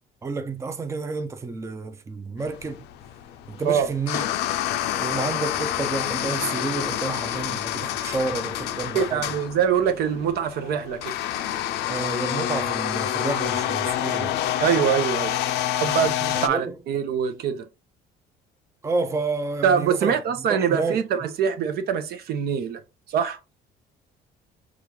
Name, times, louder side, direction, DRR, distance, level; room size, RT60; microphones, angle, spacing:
voice 1, 0.2-2.8 3.5-4.2 5.0-9.2 11.9-14.4 16.3-16.7 18.8-20.1 20.5-21.0, right 3 dB, 15° right, 0.5 m, -30 dB
sound 1, 2.4-16.5, left 12 dB, 80° left, 0.4 m, -28 dB
voice 2, 8.9-11.1 14.6-15.4 15.8-17.7 19.6-22.8 23.1-23.4, right 7 dB, 70° right, 0.7 m, -24 dB
5.0 x 2.4 x 3.0 m
cardioid pair, 110°, 17 cm